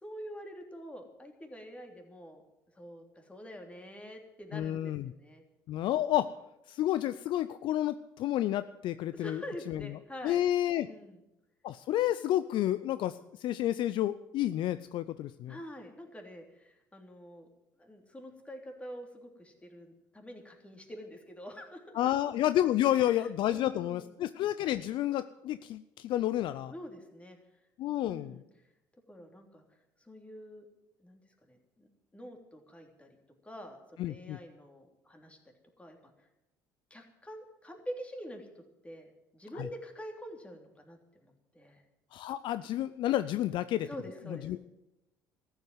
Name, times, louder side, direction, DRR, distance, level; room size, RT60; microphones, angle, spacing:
voice 1, 0.0-2.4 2.8-5.4 9.1-10.4 10.8-11.2 15.5-17.5 17.8-22.1 23.0-24.1 26.7-27.4 28.0-28.4 29.1-29.6 30.0-30.7 31.0-31.2 31.5-31.9 32.1-33.1 33.4-35.4 35.8-36.3 36.9-38.5 38.8-41.8 43.8-44.5, equal, 15° left, 3 dB, 3.2 m, -46 dB
voice 2, 4.5-5.1 5.7-6.3 6.7-9.4 9.7-9.8 10.2-10.9 11.6-15.6 21.9-26.7 27.8-28.4 34.0-34.4 39.6-39.7 42.1-43.9 44.3-44.6, left 12 dB, 60° left, 14 dB, 0.5 m, -30 dB
13.5 x 8.1 x 9.5 m, 0.90 s
hypercardioid pair, 65°, 9 cm